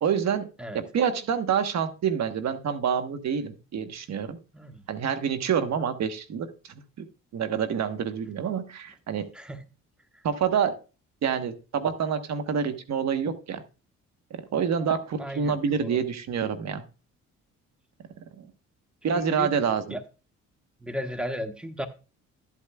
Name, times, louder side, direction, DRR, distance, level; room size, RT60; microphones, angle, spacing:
voice 1, 0.0-0.5 0.7-4.4 4.9-6.5 7.0-7.1 7.3-9.2 10.2-10.7 11.2-13.6 14.3-16.8 18.4-18.5 19.0-20.0, right 7 dB, 60° right, 9 dB, 1.1 m, -27 dB
voice 2, 15.2-16.0 19.1-19.5 19.9-20.0 20.8-21.9, equal, 5° right, 7 dB, 1.1 m, -35 dB
12.5 x 8.4 x 2.3 m, 0.32 s
cardioid pair, 90°, 30 cm